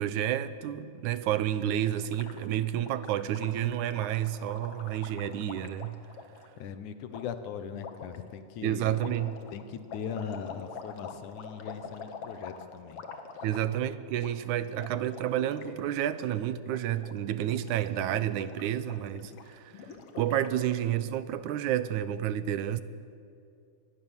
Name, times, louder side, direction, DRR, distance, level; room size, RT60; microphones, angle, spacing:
voice 1, 0.0-6.0 8.6-9.4 13.4-19.7 20.2-22.8, right 11 dB, 80° right, 2.3 m, -30 dB
Gurgling, 1.8-6.5 7.1-7.2 7.8-8.2 8.9-13.9 14.1-14.3 14.6-15.8 16.0-16.2 16.6-17.1 17.4-20.8, left 5 dB, 55° left, 2.3 m, -46 dB
voice 2, 6.6-9.2 9.5-13.0, left 7 dB, 80° left, 2.6 m, -39 dB
24.5 x 20.5 x 7.2 m
omnidirectional pair, 3.4 m